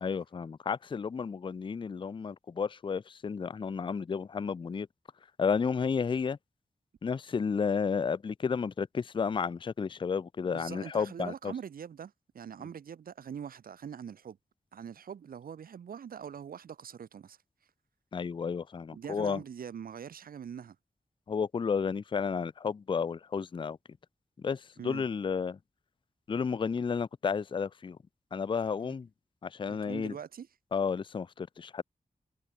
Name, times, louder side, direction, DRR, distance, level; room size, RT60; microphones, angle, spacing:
voice 1, 0.0-4.9 5.4-6.4 7.0-11.5 18.1-19.4 21.3-23.8 24.4-25.6 26.3-28.0 28.3-29.1 29.4-30.1 30.7-31.8, left 6 dB, 35° left, 0.3 m, -32 dB
voice 2, 10.4-14.4 14.7-17.4 18.9-20.8 24.8-25.1 28.8-28.9 29.7-30.5, right 8 dB, 90° right, 0.5 m, -43 dB
wide cardioid pair, 90°, 15 cm